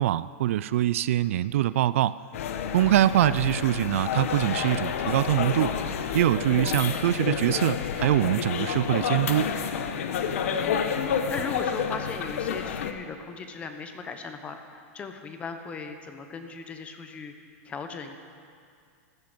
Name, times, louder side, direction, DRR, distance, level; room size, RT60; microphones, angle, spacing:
voice 1, 0.0-2.2 2.7-5.8 6.1-9.5, right 13 dB, 65° right, 17 dB, 0.3 m, -24 dB
sound 1, 2.3-12.9, left 7 dB, 70° left, 1.0 m, -29 dB
voice 2, 10.4-17.3 17.6-18.2, left 5 dB, 15° left, 7 dB, 0.9 m, -38 dB
15.0 x 13.5 x 5.1 m, 2.3 s
supercardioid pair, 160°, 8 cm